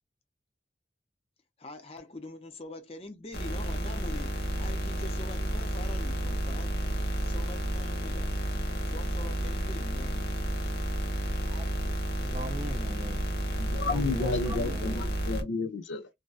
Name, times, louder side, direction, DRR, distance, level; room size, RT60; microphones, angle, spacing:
voice 1, 1.6-8.3 8.8-10.3, left 2 dB, 30° left, 0.5 m, -45 dB
sound 1, 3.3-15.4, right 1 dB, 60° left, 0.8 m, -31 dB
voice 2, 12.2-15.0, right 1 dB, 30° right, 0.4 m, -40 dB
voice 3, 13.6-16.1, left 3 dB, 80° left, 0.4 m, -32 dB
2.6 x 2.2 x 2.3 m
head